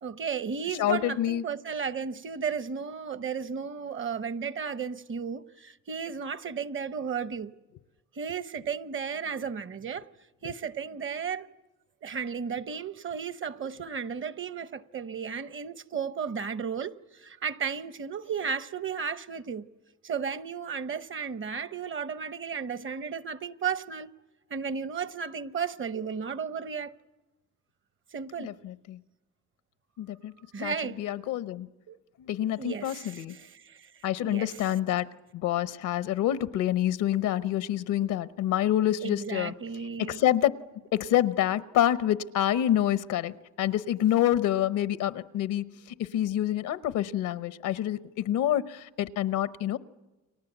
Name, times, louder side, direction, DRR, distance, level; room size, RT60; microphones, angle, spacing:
voice 1, 0.0-7.5 8.1-10.1 10.4-11.5 12.0-19.7 20.0-24.1 24.5-27.0 28.1-28.6 30.5-31.1 31.9-32.0 32.6-33.9 34.2-34.7 37.4-37.5 39.0-40.2, right 6 dB, 40° right, 0.8 m, -34 dB
voice 2, 0.8-1.4 28.4-29.0 30.0-30.3 30.6-31.7 32.2-33.3 34.0-35.1 35.3-39.5 40.0-40.5 40.9-45.6 46.0-49.8, left 12 dB, 90° left, 0.9 m, -27 dB
30.0 x 23.5 x 8.0 m
cardioid pair, 90°, 30 cm